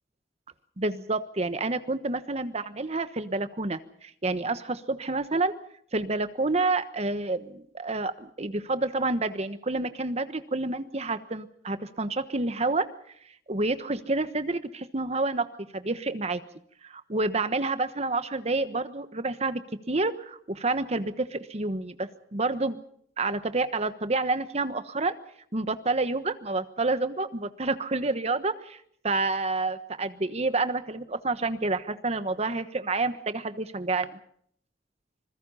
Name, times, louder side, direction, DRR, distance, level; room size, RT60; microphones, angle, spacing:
voice 1, 0.8-5.5 5.9-12.9 13.5-15.5 15.7-16.4 16.8-22.8 23.2-25.2 25.5-28.8 29.0-34.1, right 3 dB, 40° right, 11 dB, 1.2 m, -29 dB
26.5 x 21.0 x 5.7 m, 0.67 s
head